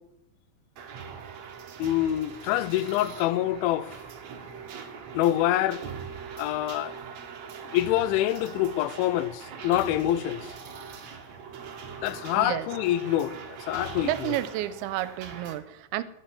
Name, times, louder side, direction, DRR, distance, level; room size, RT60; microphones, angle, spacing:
sound 1, 0.8-15.5, right 6 dB, 70° right, 1.7 m, -41 dB
voice 1, 1.8-3.9 5.2-5.8 6.4-7.0 7.7-10.4 12.0-14.1, left 13 dB, 85° left, 3.0 m, -26 dB
voice 2, 12.4-12.7 14.0-16.0, right 13 dB, 85° right, 2.9 m, -31 dB
11.0 x 9.0 x 9.9 m
omnidirectional pair, 5.4 m